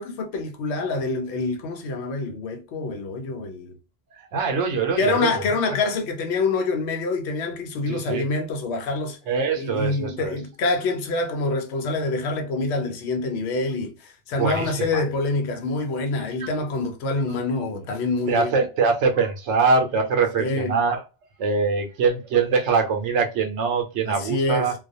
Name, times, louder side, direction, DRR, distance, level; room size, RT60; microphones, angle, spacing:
voice 1, 0.0-3.8 5.0-9.2 9.6-18.6 20.4-20.8 24.1-24.7, left 3 dB, 70° left, 0.9 m, -26 dB
voice 2, 4.3-5.4 7.9-8.2 9.3-10.3 14.4-15.0 16.4-16.5 18.3-21.0 21.4-24.7, right 5 dB, 85° right, 0.9 m, -23 dB
2.3 x 2.2 x 2.5 m
omnidirectional pair, 1.2 m